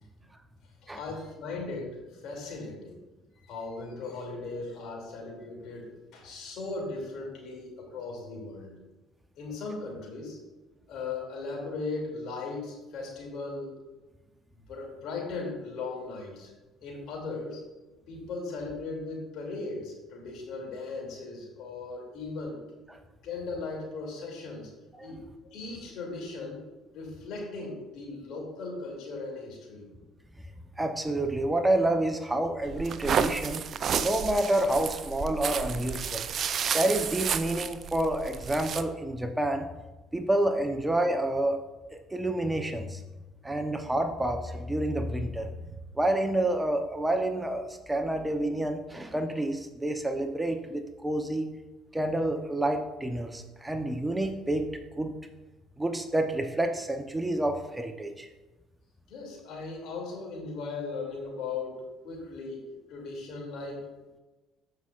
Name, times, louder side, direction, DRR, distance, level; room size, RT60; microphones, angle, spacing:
voice 1, 0.8-3.0 3.4-8.8 9.3-10.4 10.9-13.7 14.7-16.5 16.8-17.6 18.1-22.6 23.2-24.7 25.0-25.2 25.5-26.6 26.9-29.9 59.1-62.6 62.9-63.9, left 3 dB, 65° left, 0 dB, 2.7 m, -38 dB
voice 2, 30.8-33.6 34.0-36.3 36.7-39.7 40.1-41.6 42.1-43.0 43.4-45.5 46.0-51.5 51.9-54.7 55.0-55.1 55.8-58.3, right 1 dB, 15° right, 6 dB, 0.8 m, -28 dB
sound 1, 32.6-38.8, right 7 dB, 50° right, 0.5 m, -31 dB
14.0 x 5.6 x 2.5 m, 1.1 s
hypercardioid pair, 60°, 0 cm